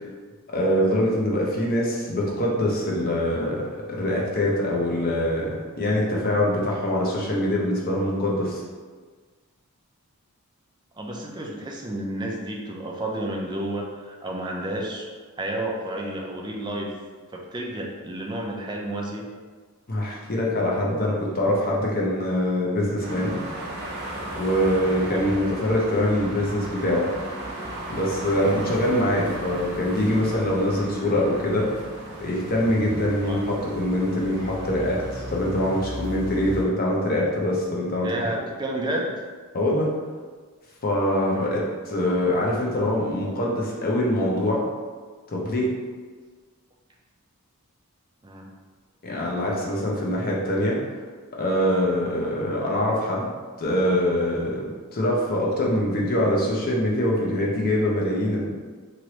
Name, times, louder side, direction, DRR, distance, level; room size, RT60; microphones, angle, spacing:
voice 1, 0.5-8.6 19.9-23.4 24.3-27.1 27.9-31.7 32.2-38.3 39.5-40.0 40.8-44.6 45.3-45.7 49.0-50.8 51.4-53.3 53.6-54.6 54.9-58.5, left 1 dB, 45° left, -3 dB, 0.7 m, -24 dB
voice 2, 11.0-15.0 15.4-16.9 17.3-19.3 25.0-25.2 33.2-33.4 38.0-39.1 41.3-41.6 48.2-48.5, right 1 dB, 20° right, -1 dB, 0.4 m, -31 dB
sound 1, 23.0-36.6, right 1 dB, 50° right, 0.7 m, -35 dB
3.1 x 2.6 x 2.9 m, 1.5 s
head